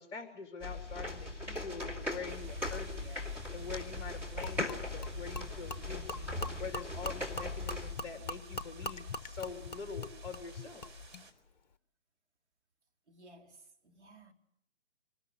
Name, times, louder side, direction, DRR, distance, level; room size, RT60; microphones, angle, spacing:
voice 1, 0.0-11.0, left 5 dB, 15° left, 3.0 m, -45 dB
sound 1, 0.6-7.9, left 2 dB, 5° right, 2.6 m, -39 dB
sound 2, 2.3-11.3, right 4 dB, 45° right, 4.5 m, -54 dB
Gurgling / Liquid, 4.4-11.2, left 3 dB, 40° left, 1.1 m, -42 dB
voice 2, 13.1-14.3, right 2 dB, 70° right, 3.6 m, -57 dB
25.5 x 19.5 x 8.1 m
figure-of-eight pair, 140°, 35 cm